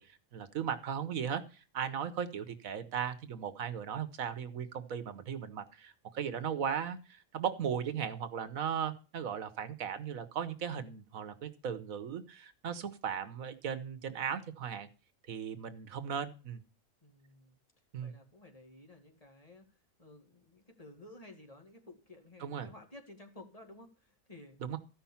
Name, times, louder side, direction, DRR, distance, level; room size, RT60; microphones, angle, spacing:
voice 1, 0.0-14.9 15.3-16.6 17.9-18.1 22.4-22.7 24.6-24.8, right 8 dB, 80° right, 1.4 m, -37 dB
voice 2, 17.0-17.6 18.0-19.6 20.0-24.6, left 2 dB, 25° left, 2.2 m, -54 dB
14.0 x 5.8 x 7.1 m
omnidirectional pair, 1.4 m